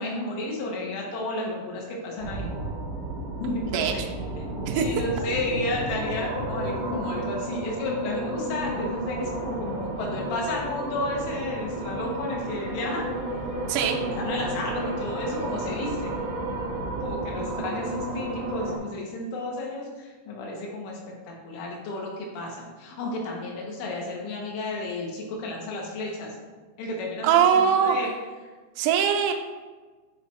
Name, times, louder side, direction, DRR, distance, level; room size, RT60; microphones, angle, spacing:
voice 1, 0.0-2.5 3.4-4.0 4.8-13.1 14.2-16.2 17.0-21.0 21.3-26.4 26.8-28.1, left 2 dB, 80° left, -1 dB, 3.7 m, -32 dB
sound 1, 2.2-18.8, right 1 dB, 60° right, 2.8 m, -32 dB
voice 2, 3.7-4.1 4.7-4.9 5.5-5.6 13.7-14.0 27.2-28.0 28.8-29.3, right 8 dB, 85° right, 1 dB, 2.6 m, -22 dB
9.5 x 3.4 x 3.2 m, 1.3 s
omnidirectional pair, 5.7 m